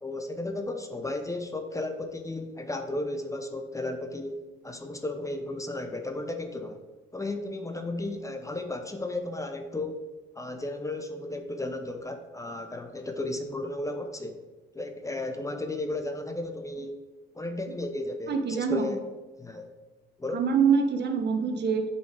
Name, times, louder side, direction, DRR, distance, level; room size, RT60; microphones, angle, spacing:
voice 1, 0.0-6.8 7.1-10.0 10.4-14.4 14.7-17.0 17.3-19.0 19.4-19.7 20.2-20.4, left 2 dB, 15° left, 6 dB, 0.9 m, -34 dB
voice 2, 18.3-18.9 20.3-21.8, right 6 dB, 60° right, 4 dB, 1.2 m, -25 dB
8.2 x 5.5 x 4.7 m, 1.2 s
cardioid pair, 90°, 20 cm